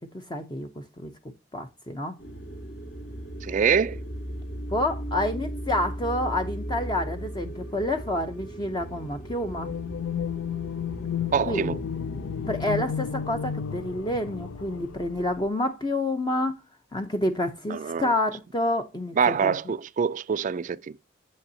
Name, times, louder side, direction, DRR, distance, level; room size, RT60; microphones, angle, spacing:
voice 1, 0.1-0.7 1.0-1.1 1.5-2.2 4.7-9.7 11.5-11.8 12.5-16.6 16.9-19.5, left 1 dB, 20° left, 0.6 m, -28 dB
sound 1, 2.2-12.8, equal, 60° left, 1.9 m, -37 dB
voice 2, 3.4-4.0 11.3-11.8 17.7-18.1 19.2-21.0, right 6 dB, 40° right, 0.3 m, -25 dB
sound 2, 9.5-15.5, left 7 dB, 80° left, 0.4 m, -33 dB
9.5 x 7.6 x 2.7 m
head